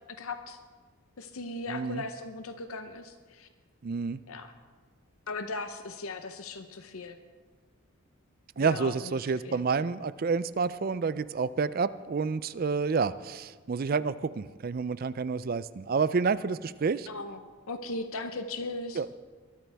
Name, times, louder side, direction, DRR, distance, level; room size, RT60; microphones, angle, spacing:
voice 1, 0.2-0.6 1.2-3.5 4.3-4.5 5.3-7.2 8.6-9.6 17.1-17.4 17.7-19.0, left 3 dB, 70° left, 8 dB, 0.8 m, -38 dB
voice 2, 1.7-2.0 3.8-4.2 8.6-17.1 19.0-19.2, right 5 dB, 40° right, 15 dB, 0.4 m, -29 dB
22.5 x 12.5 x 3.4 m, 1.5 s
head